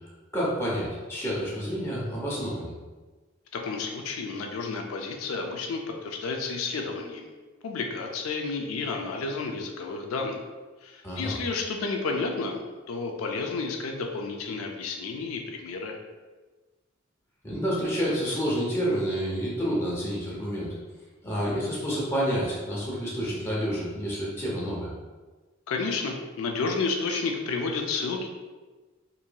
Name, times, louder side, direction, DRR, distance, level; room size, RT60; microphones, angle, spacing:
voice 1, 0.3-2.8 11.0-11.3 17.4-20.8 21.2-24.9, equal, 15° left, -7 dB, 0.7 m, -29 dB
voice 2, 3.5-7.3 7.6-10.4 10.8-16.0 25.7-28.3, left 4 dB, 85° left, 3 dB, 0.4 m, -31 dB
2.9 x 2.6 x 2.2 m, 1.3 s
head